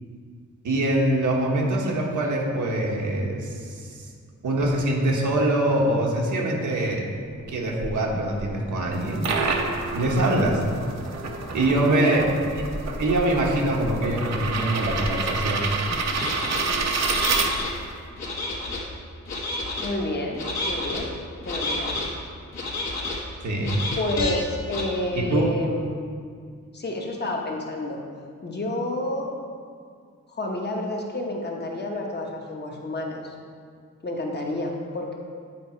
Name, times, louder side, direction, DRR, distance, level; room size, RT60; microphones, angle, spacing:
voice 1, 0.6-4.0 4.4-7.1 7.5-9.2 9.9-10.6 11.5-12.3 12.9-15.7 23.4-23.8 25.1-25.5, right 1 dB, 85° right, -1 dB, 1.3 m, -24 dB
sound 1, 7.2-17.8, left 1 dB, 15° left, 0.4 m, -38 dB
sound 2, 8.9-17.9, right 4 dB, 60° right, 0.7 m, -29 dB
voice 2, 11.9-12.3 19.8-21.1 21.4-22.0 24.0-26.0 26.7-28.0 28.4-29.4 30.3-33.2 34.0-35.2, left 1 dB, 35° left, 0 dB, 1.0 m, -29 dB
sound 3, 16.1-16.6 17.0-17.7 18.2-18.8 19.3-19.9 20.4-21.0 21.4-22.1 22.5-23.2 23.6-24.3 24.7-24.8, left 2 dB, 65° left, 1.6 m, -30 dB
9.0 x 4.8 x 4.4 m, 2.1 s
wide cardioid pair, 155°, 29 cm